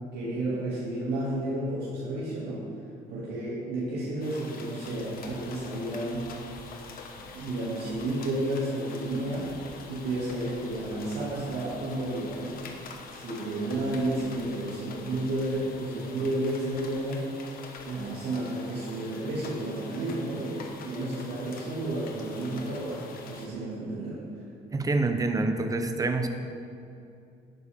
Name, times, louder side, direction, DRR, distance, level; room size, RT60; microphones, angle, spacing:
voice 1, 0.1-2.7 3.1-6.3 7.2-9.5 9.9-12.6 13.1-17.3 17.8-23.0 23.3-24.2, right 1 dB, 75° right, -8 dB, 2.5 m, -31 dB
sound 1, 4.2-23.5, left 4 dB, 60° left, 1.2 m, -45 dB
voice 2, 24.7-26.3, right 3 dB, 20° right, 6 dB, 0.9 m, -26 dB
11.5 x 9.4 x 3.7 m, 2.6 s
cardioid pair, 110°, 17 cm